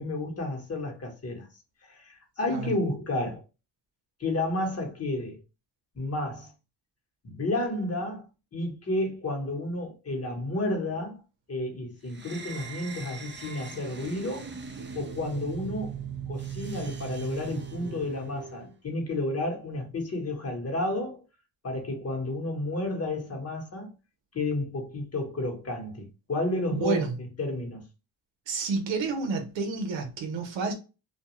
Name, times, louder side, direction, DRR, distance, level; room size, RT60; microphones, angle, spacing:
voice 1, 0.0-1.5 1.8-3.4 4.2-5.4 5.9-6.5 7.2-8.2 8.5-11.2 11.5-14.5 14.9-21.2 21.6-23.9 24.3-27.8, left 2 dB, 35° left, 1.1 m, -31 dB
sound 1, 12.1-18.7, right 7 dB, 25° right, 0.5 m, -39 dB
voice 2, 26.7-27.2 28.5-30.7, right 4 dB, 90° right, 0.7 m, -29 dB
2.3 x 2.3 x 2.9 m
cardioid pair, 75°, 43 cm